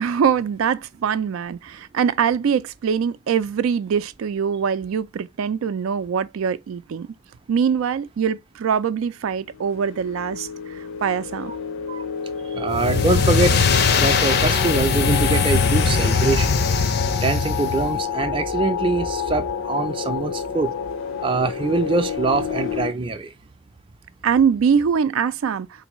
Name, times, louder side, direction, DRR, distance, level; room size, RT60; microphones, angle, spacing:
voice 1, 0.0-7.1 7.5-11.5 24.2-25.9, right 7 dB, 90° right, 0.4 m, -23 dB
sound 1, 9.5-22.9, left 6 dB, 85° left, 0.7 m, -29 dB
voice 2, 12.5-16.6 17.2-20.7 21.2-23.3, right 3 dB, 25° right, 0.4 m, -24 dB
sound 2, 12.7-18.0, left 5 dB, 50° left, 0.5 m, -20 dB
3.8 x 2.6 x 3.0 m
head